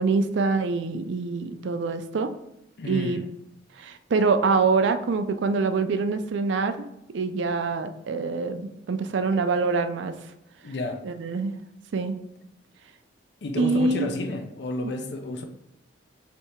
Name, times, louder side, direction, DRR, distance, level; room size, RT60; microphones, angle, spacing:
voice 1, 0.0-2.3 2.8-3.2 3.8-6.9 7.1-10.1 11.0-11.5 11.9-12.2 13.6-14.1, right 4 dB, 70° right, 0.4 m, -25 dB
voice 2, 2.8-3.2 10.6-11.0 13.4-15.4, left 2 dB, 60° left, 0.5 m, -31 dB
3.4 x 2.7 x 4.2 m
head